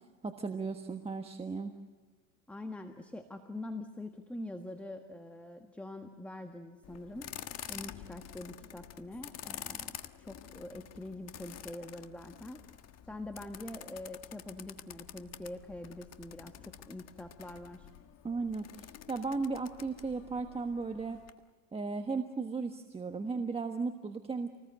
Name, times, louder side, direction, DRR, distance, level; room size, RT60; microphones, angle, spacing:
voice 1, 0.2-1.7 18.2-21.2 21.7-24.5, right 4 dB, 15° right, 6 dB, 1.4 m, -36 dB
voice 2, 2.5-7.3 7.7-12.6 13.1-17.9, left 1 dB, 5° left, 6 dB, 1.5 m, -44 dB
sound 1, 6.8-21.3, left 10 dB, 40° left, 1.5 m, -48 dB
28.0 x 20.0 x 7.9 m, 1.4 s
supercardioid pair, 125°, 40 cm